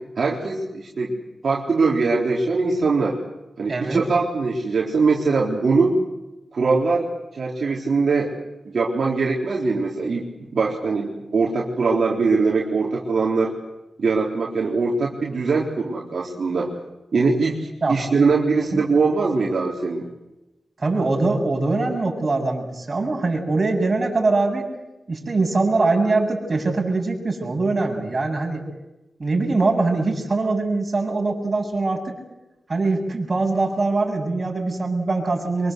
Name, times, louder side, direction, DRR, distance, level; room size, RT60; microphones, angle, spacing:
voice 1, 0.2-3.2 3.6-6.0 6.5-7.1 7.3-8.3 8.7-10.2 10.5-13.5 14.0-16.7 17.1-20.1, right 4 dB, 70° right, -3 dB, 4.0 m, -22 dB
voice 2, 3.7-4.0 17.8-18.0 18.7-18.8 20.8-24.7 25.1-28.6 29.2-32.2 32.7-35.7, right 3 dB, 45° right, 1 dB, 7.5 m, -22 dB
24.5 x 23.5 x 8.1 m, 0.99 s
cardioid pair, 50°, 0 cm